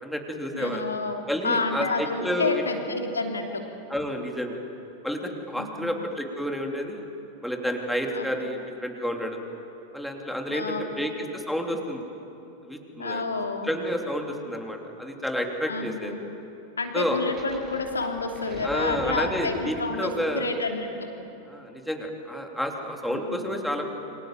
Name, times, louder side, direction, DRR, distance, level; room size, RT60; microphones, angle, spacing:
voice 1, 0.0-0.8 1.3-2.6 3.9-4.6 5.0-7.0 7.4-9.4 9.9-12.0 12.6-13.2 13.6-16.1 16.9-17.2 18.6-20.5 21.5-23.9, equal, ahead, 2 dB, 3.2 m, -30 dB
voice 2, 0.5-3.6 5.6-5.9 8.1-8.3 10.5-10.8 13.0-13.7 15.7-16.2 16.8-20.9 23.1-23.5, left 3 dB, 75° left, 3 dB, 2.9 m, -29 dB
sound 1, 17.1-19.9, right 2 dB, 25° right, 6.5 m, -41 dB
28.0 x 25.5 x 7.6 m, 3.0 s
figure-of-eight pair, 90°, 0 cm